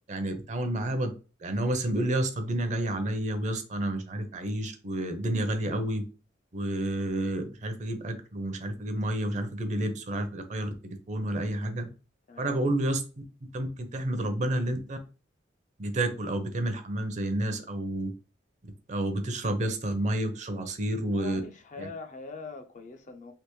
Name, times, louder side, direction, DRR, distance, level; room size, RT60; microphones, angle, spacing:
voice 1, 0.1-1.1 1.4-6.0 6.5-11.9 12.4-13.0 13.4-15.0 15.8-18.1 18.9-21.4 21.8-21.9, right 1 dB, 40° right, 0.6 m, -30 dB
voice 2, 12.3-12.6 21.1-23.3, left 4 dB, 40° left, 0.5 m, -43 dB
3.4 x 2.9 x 3.0 m
head